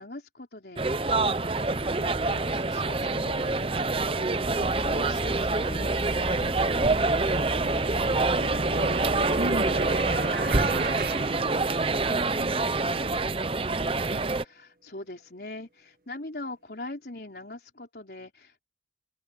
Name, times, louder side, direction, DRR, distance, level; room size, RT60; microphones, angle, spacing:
voice 1, 0.0-6.6 14.4-18.6, left 2 dB, 65° left, 3.9 m, -42 dB
sound 1, 0.8-14.4, right 3 dB, 30° right, 0.8 m, -26 dB
sound 2, 4.6-10.2, equal, 30° left, 2.8 m, -37 dB
sound 3, 7.0-12.2, right 2 dB, 50° right, 1.7 m, -34 dB
voice 2, 8.4-9.1 9.4-12.5, right 1 dB, 80° right, 2.3 m, -40 dB
head